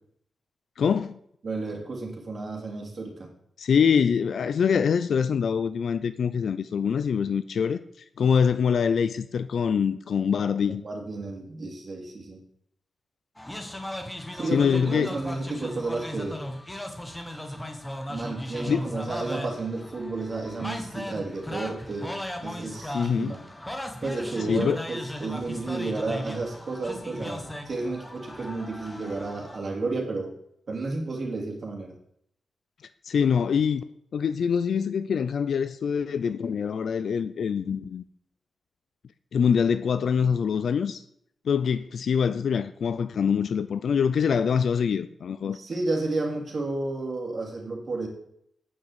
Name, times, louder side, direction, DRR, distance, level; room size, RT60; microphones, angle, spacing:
voice 1, 0.8-1.2 3.6-10.8 14.5-15.1 18.7-18.8 22.9-23.3 24.5-24.8 33.0-33.8 34.1-38.0 39.3-41.0 41.5-45.6, left 7 dB, 70° left, 0.5 m, -24 dB
voice 2, 1.4-3.3 10.7-12.4 14.3-16.4 18.1-23.4 24.0-30.3 30.7-32.0 45.5-48.1, right 3 dB, 40° right, 2.9 m, -32 dB
sound 1, 13.4-29.6, left 1 dB, 10° left, 1.3 m, -37 dB
9.0 x 6.5 x 8.0 m
wide cardioid pair, 130°, 0 cm